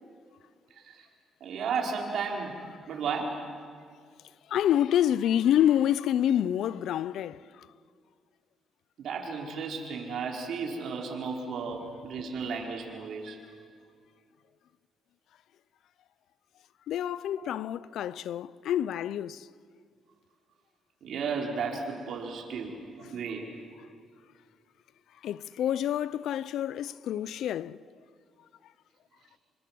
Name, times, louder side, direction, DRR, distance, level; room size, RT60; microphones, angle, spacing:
voice 1, 1.4-2.5 2.9-3.4 9.0-13.4 17.4-17.5 21.0-23.4, right 5 dB, 70° right, 5.1 m, -34 dB
voice 2, 4.5-7.4 16.9-19.5 25.2-27.8, left 10 dB, 75° left, 0.6 m, -27 dB
27.5 x 26.5 x 7.8 m
cardioid pair, 90°, 0 cm